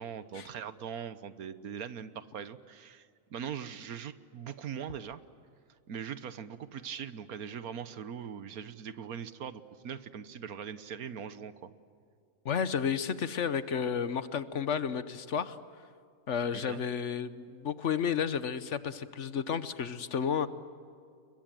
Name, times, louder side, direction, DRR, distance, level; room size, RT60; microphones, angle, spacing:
voice 1, 0.0-5.2 5.9-11.7 16.5-16.8, right 8 dB, 90° right, 13 dB, 1.5 m, -41 dB
voice 2, 12.4-15.6 16.3-20.5, left 7 dB, 60° left, 13 dB, 1.2 m, -32 dB
29.5 x 22.5 x 7.7 m, 2.4 s
omnidirectional pair, 1.5 m